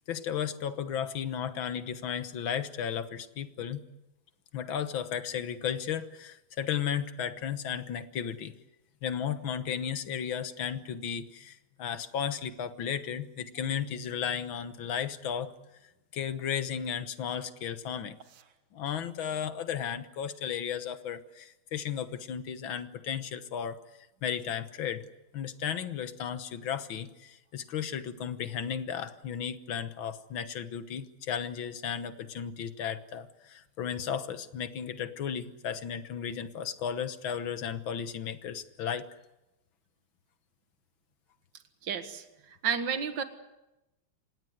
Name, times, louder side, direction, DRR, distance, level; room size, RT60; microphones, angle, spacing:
voice 1, 0.1-3.8 4.5-8.5 9.0-15.5 16.1-18.2 18.7-23.8 24.2-25.0 25.3-39.1, left 8 dB, 75° left, 11 dB, 2.0 m, -34 dB
voice 2, 41.8-43.2, right 7 dB, 65° right, 8 dB, 2.2 m, -32 dB
26.5 x 19.0 x 7.9 m, 0.95 s
omnidirectional pair, 2.2 m